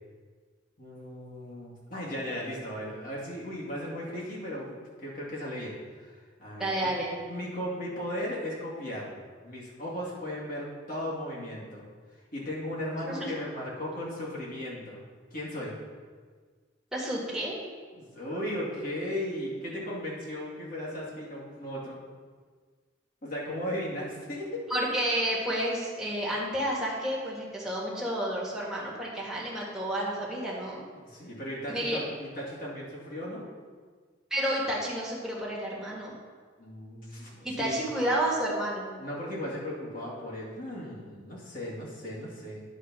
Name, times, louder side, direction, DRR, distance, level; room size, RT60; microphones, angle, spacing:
voice 1, 0.8-6.9 7.3-9.2 9.4-11.8 12.3-15.0 15.3-15.7 18.0-22.0 23.2-24.6 30.9-33.5 36.6-37.8 39.0-42.6, equal, 45° left, -5 dB, 2.4 m, -36 dB
voice 2, 6.6-7.1 13.0-13.2 16.9-17.6 24.7-30.8 31.7-32.0 34.3-36.1 37.4-38.9, right 1 dB, 5° right, -5 dB, 1.8 m, -30 dB
10.0 x 4.4 x 6.2 m, 1.5 s
head